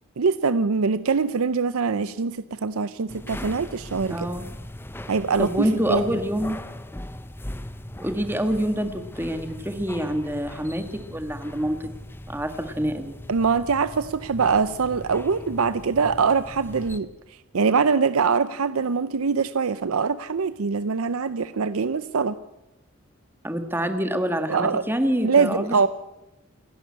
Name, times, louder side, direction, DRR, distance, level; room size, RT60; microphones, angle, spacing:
voice 1, 0.2-4.3 5.1-6.0 13.3-22.4 24.5-24.8 25.2-25.9, right 5 dB, 80° right, 14 dB, 0.6 m, -23 dB
sound 1, 3.1-17.0, left 1 dB, 10° left, 0.8 m, -39 dB
voice 2, 4.1-4.5 5.4-6.6 8.0-11.8 12.3-13.1 23.4-25.9, equal, 10° right, 7 dB, 1.6 m, -26 dB
28.5 x 11.0 x 8.6 m, 1.0 s
head